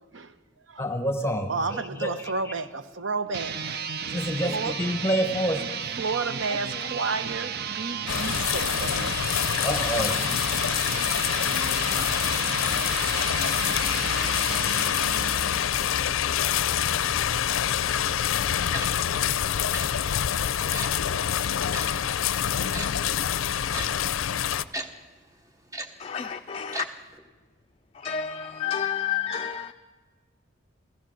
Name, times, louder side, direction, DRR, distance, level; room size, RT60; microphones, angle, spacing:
voice 1, 0.8-2.1 2.4-2.5 4.1-5.7 9.6-10.2, equal, 15° left, 1.0 m, -27 dB
voice 2, 1.5-4.8 6.0-9.7 13.7-13.8, right 4 dB, 70° right, 0.9 m, -32 dB
sound 1, 3.2-16.0, right 7 dB, 50° right, 0.5 m, -33 dB
sound 2, 8.1-24.6, left 9 dB, 85° left, 0.5 m, -26 dB
Tick-tock, 18.7-18.9 19.7-19.9 20.7-20.9 21.7-21.9 22.7-22.9 23.7-23.9 24.7-24.9 25.7-25.9 26.7-26.9 27.1-27.2, right 1 dB, 15° right, 0.8 m, -34 dB
voice 3, 26.0-26.9 27.9-29.7, left 8 dB, 30° left, 0.4 m, -30 dB
15.5 x 15.0 x 6.3 m
head